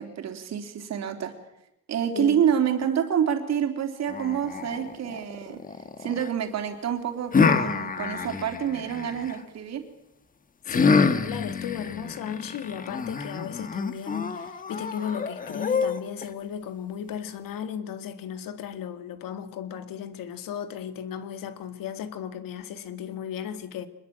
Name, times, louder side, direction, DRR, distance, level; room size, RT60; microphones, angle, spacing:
voice 1, 0.0-1.3 1.9-5.6 6.0-9.8, right 8 dB, 55° right, 3.5 m, -27 dB
sound 1, 4.1-6.3 7.3-9.4 10.7-16.3, left 5 dB, 25° left, 1.3 m, -27 dB
voice 2, 10.7-23.9, left 8 dB, 90° left, 2.2 m, -35 dB
26.0 x 21.5 x 7.8 m
cardioid pair, 175°, 33 cm